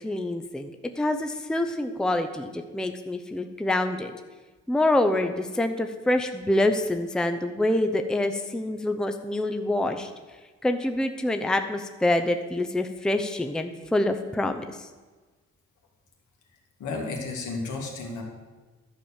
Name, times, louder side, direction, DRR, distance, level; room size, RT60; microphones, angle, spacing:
voice 1, 0.0-4.1 4.7-10.1 10.6-14.8, left 1 dB, ahead, 6 dB, 0.6 m, -26 dB
voice 2, 16.8-18.2, left 3 dB, 75° left, 1 dB, 2.2 m, -32 dB
11.5 x 4.9 x 7.2 m, 1.3 s
cardioid pair, 90°, 30 cm